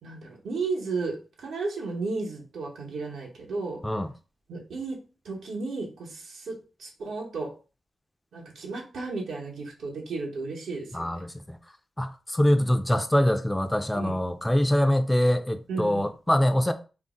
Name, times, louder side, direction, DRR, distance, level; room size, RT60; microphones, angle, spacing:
voice 1, 0.0-3.8 4.5-7.5 8.3-11.2 13.9-14.1 15.7-16.0, right 3 dB, 90° right, 0.8 m, -34 dB
voice 2, 10.9-11.6 12.0-16.7, left 1 dB, 10° left, 0.3 m, -24 dB
2.5 x 2.0 x 3.6 m
cardioid pair, 70°, 0 cm